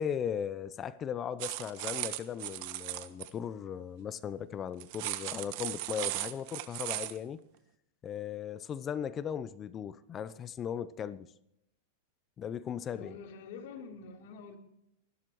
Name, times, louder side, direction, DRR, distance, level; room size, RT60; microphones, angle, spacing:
voice 1, 0.0-7.4 8.0-11.3 12.4-13.2, left 8 dB, 30° left, 0.8 m, -37 dB
sound 1, 1.4-3.3 4.8-7.2, right 18 dB, 55° right, 1.2 m, -37 dB
voice 2, 12.9-14.6, left 5 dB, 60° left, 3.7 m, -46 dB
28.0 x 12.0 x 3.1 m
hypercardioid pair, 110°, 0 cm